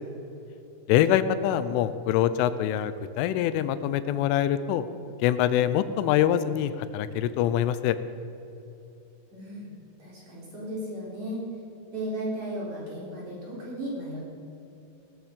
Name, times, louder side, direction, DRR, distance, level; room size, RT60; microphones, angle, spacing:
voice 1, 0.9-4.8 5.2-8.0, left 11 dB, 90° left, 13 dB, 3.2 m, -24 dB
voice 2, 9.3-9.7 10.0-11.4 11.9-14.2, right 1 dB, 40° right, -5 dB, 4.9 m, -35 dB
19.0 x 14.0 x 5.3 m, 2.9 s
omnidirectional pair, 5.5 m